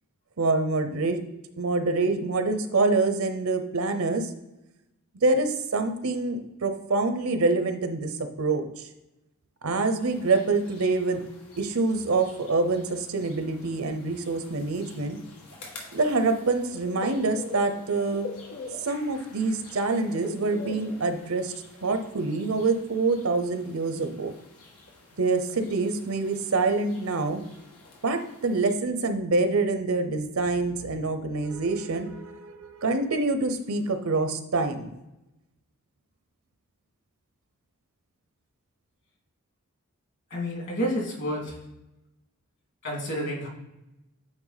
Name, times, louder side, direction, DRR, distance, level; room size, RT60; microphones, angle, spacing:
voice 1, 0.4-1.2 1.6-4.3 5.2-8.1 8.4-8.8 9.6-11.2 11.6-15.2 15.9-18.3 18.8-21.5 21.8-24.3 25.2-27.4 28.0-34.9, right 3 dB, 70° right, 7 dB, 0.7 m, -26 dB
sound 1, 10.0-28.7, left 3 dB, 90° left, 1.6 m, -46 dB
voice 2, 40.3-41.7 42.8-43.5, equal, 55° left, -1 dB, 2.3 m, -30 dB
8.9 x 3.4 x 4.1 m, 0.94 s
head